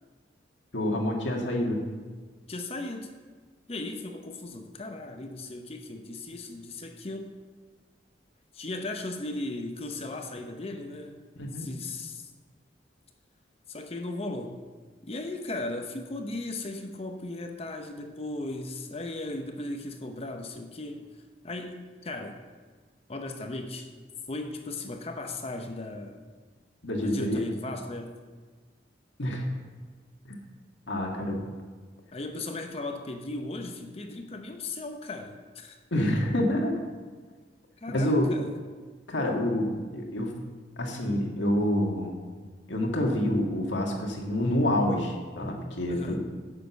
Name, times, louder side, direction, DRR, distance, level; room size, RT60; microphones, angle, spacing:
voice 1, 0.7-1.8 11.4-11.6 26.8-27.4 29.2-29.5 30.3-30.4 30.9-31.4 35.9-36.8 37.9-38.3 39.1-40.3 40.8-42.2 42.7-46.2, left 1 dB, 85° left, 1 dB, 1.8 m, -27 dB
voice 2, 2.5-3.1 3.7-7.4 8.5-11.2 11.5-12.3 13.7-14.6 15.0-22.4 23.1-23.9 24.3-26.2 27.0-28.1 32.1-35.8 37.8-38.6 45.9-46.2, left 2 dB, 35° left, 5 dB, 0.8 m, -37 dB
10.0 x 6.7 x 8.0 m, 1.4 s
head